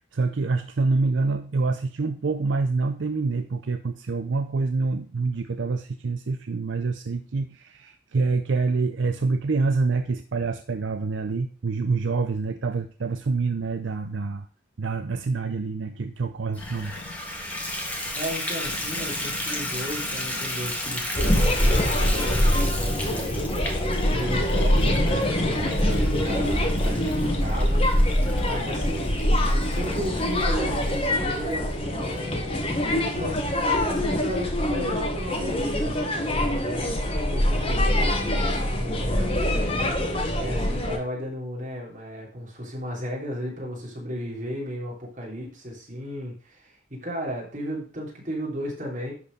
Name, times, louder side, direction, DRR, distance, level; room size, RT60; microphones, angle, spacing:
voice 1, 0.1-14.5 14.8-17.0, right 4 dB, 70° right, 8 dB, 0.5 m, -26 dB
Water tap faucet / Bathtub (filling or washing), 16.5-30.9 31.5-31.6 32.1-32.2 32.5-32.6, left 1 dB, 10° left, 1.4 m, -34 dB
sound 1, 16.6-29.3, left 3 dB, 70° left, 1.3 m, -39 dB
voice 2, 18.1-27.9 28.2-29.3 29.5-49.1, equal, 40° right, -3 dB, 3.2 m, -35 dB
sound 2, 21.1-41.0, left 1 dB, 30° left, 1.3 m, -24 dB
11.0 x 4.3 x 5.2 m, 0.41 s
head